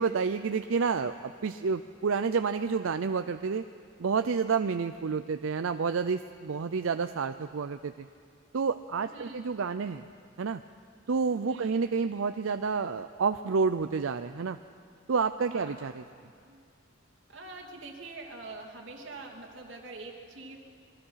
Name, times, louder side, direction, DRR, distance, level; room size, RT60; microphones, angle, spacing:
voice 1, 0.0-3.6 4.0-8.1 8.5-10.0 10.4-10.6 11.1-14.6 15.1-15.9, right 5 dB, 85° right, 9 dB, 0.5 m, -29 dB
voice 2, 9.0-9.4 11.2-11.7 15.5-15.8 16.4-16.6 17.3-20.6, right 3 dB, 65° right, -2 dB, 3.0 m, -44 dB
26.0 x 21.5 x 5.7 m, 2.2 s
head